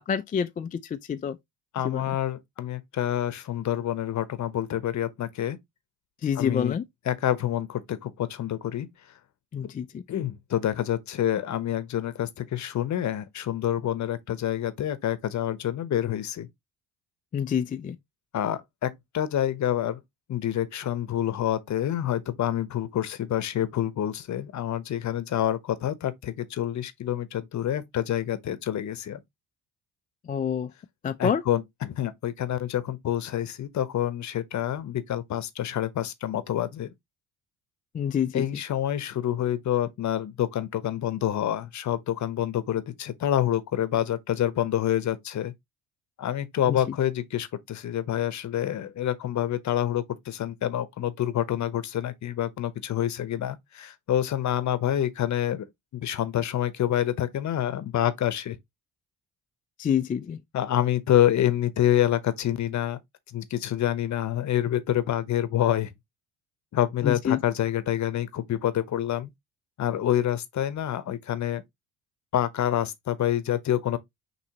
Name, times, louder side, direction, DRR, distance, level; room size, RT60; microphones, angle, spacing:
voice 1, 0.1-0.8 1.1-1.4 1.8-2.0 6.2-6.8 9.5-9.9 17.3-18.0 30.3-30.7 31.0-31.4 37.9-38.4 59.8-60.4 67.0-67.4, left 8 dB, 25° left, 0.3 m, -27 dB
voice 2, 1.7-5.6 6.3-6.8 7.0-8.9 10.1-16.5 18.3-20.0 20.3-29.2 31.2-36.9 38.3-45.5 46.2-55.7 55.9-58.6 60.5-63.0 63.3-65.9 66.7-69.3 69.8-71.6 72.3-74.0, left 11 dB, 45° left, 0.8 m, -27 dB
5.7 x 3.0 x 2.8 m
supercardioid pair, 75°, 39 cm